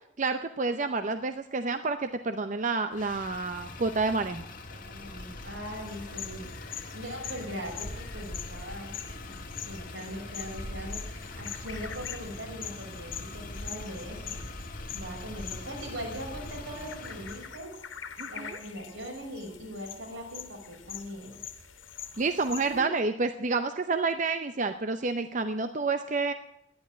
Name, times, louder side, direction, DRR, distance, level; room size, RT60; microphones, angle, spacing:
voice 1, 0.2-4.4 18.2-18.6 22.2-26.3, right 3 dB, 40° right, 8 dB, 0.6 m, -29 dB
Motor vehicle (road), 2.9-17.5, left 2 dB, 45° left, 1.5 m, -42 dB
voice 2, 4.7-9.0 9.2-9.4 9.7-14.4 14.9-17.8 18.3-21.4 22.7-22.9, equal, 85° right, -1 dB, 5.8 m, -41 dB
sound 1, 5.8-22.8, left 8 dB, 85° left, 1.6 m, -44 dB
12.0 x 10.5 x 9.1 m, 0.78 s
head